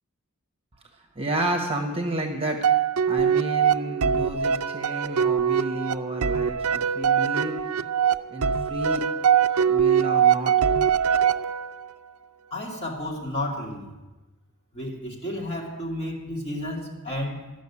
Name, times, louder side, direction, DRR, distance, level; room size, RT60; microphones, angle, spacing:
voice 1, 1.1-2.6 3.1-7.5 8.3-9.1 9.7-10.5, right 1 dB, 25° right, 3 dB, 1.2 m, -31 dB
sound 1, 2.6-11.9, right 8 dB, 70° right, 0.5 m, -22 dB
voice 2, 12.5-13.9 14.7-17.5, left 1 dB, 30° left, -2 dB, 2.6 m, -32 dB
12.5 x 6.5 x 9.7 m, 1.1 s
head